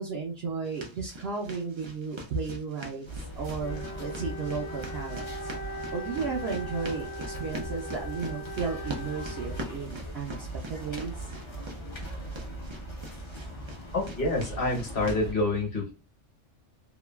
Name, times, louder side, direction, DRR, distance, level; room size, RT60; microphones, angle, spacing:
voice 1, 0.0-3.1 3.4-11.3, right 5 dB, 60° right, -2 dB, 0.8 m, -34 dB
sound 1, 0.6-15.2, right 1 dB, 40° right, 0.4 m, -44 dB
sound 2, 3.1-15.3, right 1 dB, 30° left, 0.5 m, -40 dB
Wind instrument woodwind instrument, 3.6-10.0, equal, 75° left, 0.9 m, -40 dB
voice 2, 13.9-15.9, left 2 dB, 50° left, 0 dB, 1.2 m, -27 dB
2.9 x 2.4 x 2.2 m, 0.31 s
omnidirectional pair, 1.3 m